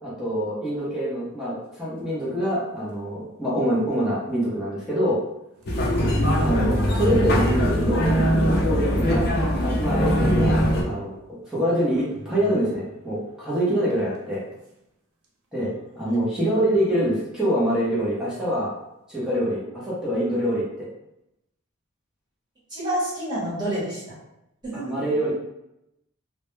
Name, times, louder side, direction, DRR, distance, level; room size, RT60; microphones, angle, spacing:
voice 1, 0.0-5.2 6.4-8.1 8.5-9.3 9.6-10.6 10.8-14.5 15.5-18.7 19.1-20.9 24.7-25.3, equal, 5° right, -8 dB, 0.6 m, -25 dB
sound 1, 2.0-2.2 3.0-3.1 3.4-3.5 4.8-4.9 5.6-7.8 8.3-8.4 9.2-9.3 9.7-10.1 10.7-10.8 12.1-12.9 13.9-14.2, left 1 dB, 85° right, 0.5 m, -30 dB
sound 2, 5.7-10.8, equal, 45° left, 0.4 m, -21 dB
voice 2, 22.7-24.2 24.6-24.8, right 1 dB, 20° right, -10 dB, 0.9 m, -29 dB
2.1 x 2.1 x 3.0 m, 0.86 s
head